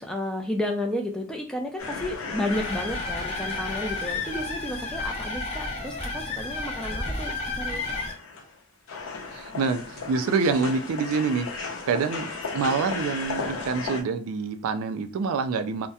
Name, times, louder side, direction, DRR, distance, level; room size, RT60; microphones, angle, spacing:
voice 1, 0.0-7.9, left 1 dB, 5° left, 2 dB, 0.3 m, -32 dB
sound 1, 1.8-5.2 5.7-5.8 6.1-8.6 8.9-14.0, left 4 dB, 75° left, 0.7 m, -36 dB
sound 2, 2.5-8.1, left 3 dB, 30° left, 0.7 m, -32 dB
voice 2, 9.3-11.5 11.9-15.9, right 5 dB, 80° right, 8 dB, 0.3 m, -26 dB
2.7 x 2.1 x 2.3 m, 0.36 s
head